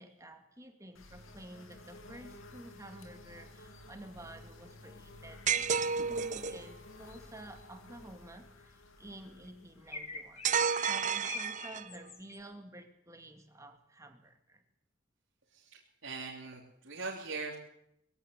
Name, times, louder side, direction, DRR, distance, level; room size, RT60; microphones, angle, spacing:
voice 1, 0.0-10.4 10.8-14.6, right 1 dB, 15° right, 5 dB, 2.3 m, -51 dB
sound 1, 0.9-11.6, left 2 dB, 70° left, 2.5 m, -53 dB
sound 2, 5.5-6.6 10.4-12.0, right 6 dB, 35° right, 0.7 m, -31 dB
sound 3, 9.9-12.4, left 4 dB, 30° left, 1.8 m, -45 dB
voice 2, 15.5-17.6, right 4 dB, 65° right, -4 dB, 3.3 m, -41 dB
21.5 x 16.0 x 8.3 m, 0.78 s
head